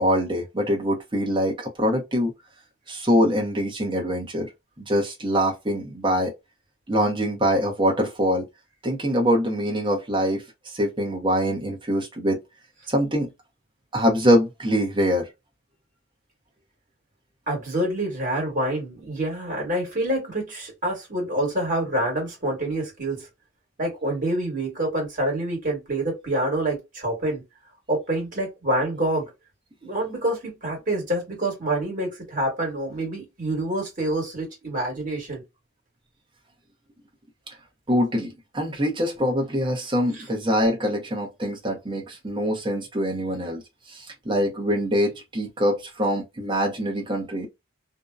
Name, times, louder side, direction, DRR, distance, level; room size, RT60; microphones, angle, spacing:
voice 1, 0.0-2.3 2.9-4.5 4.9-6.3 6.9-8.4 8.8-12.4 12.9-13.3 13.9-15.3 37.9-43.6 43.9-47.5, equal, 20° right, 0.7 m, -24 dB
voice 2, 17.5-23.3 23.8-27.4 27.9-29.3 29.8-35.4 40.2-40.3, right 1 dB, 40° right, 1.4 m, -27 dB
2.6 x 2.1 x 2.3 m
head